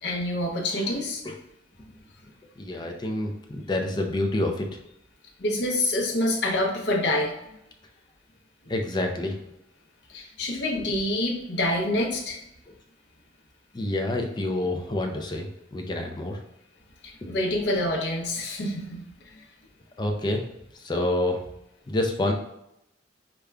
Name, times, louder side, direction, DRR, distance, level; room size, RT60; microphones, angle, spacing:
voice 1, 0.0-1.2 5.4-7.3 8.6-8.7 10.1-12.4 17.0-19.0 19.3-19.5, left 1 dB, 65° left, 0 dB, 0.7 m, -27 dB
voice 2, 2.6-4.8 8.7-9.5 10.8-10.9 12.7-12.8 13.7-16.4 17.2-17.3 20.0-20.5 20.7-21.4 21.9-22.3, left 1 dB, 25° left, 3 dB, 0.4 m, -28 dB
4.9 x 2.2 x 2.3 m, 0.83 s
head